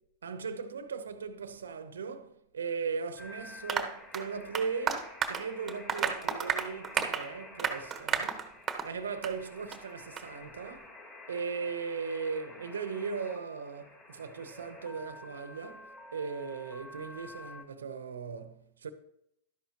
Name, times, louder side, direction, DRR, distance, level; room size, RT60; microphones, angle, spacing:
voice 1, 0.2-8.5 8.8-11.0 11.3-18.9, right 5 dB, 85° right, 1.0 m, -38 dB
sound 1, 3.2-17.6, left 2 dB, 35° left, 3.3 m, -50 dB
Applause, 3.7-8.9 9.2-9.4 9.7-9.8 10.2-10.3, right 6 dB, 20° right, 1.3 m, -33 dB
12.0 x 10.5 x 3.0 m
hypercardioid pair, 110°, 0 cm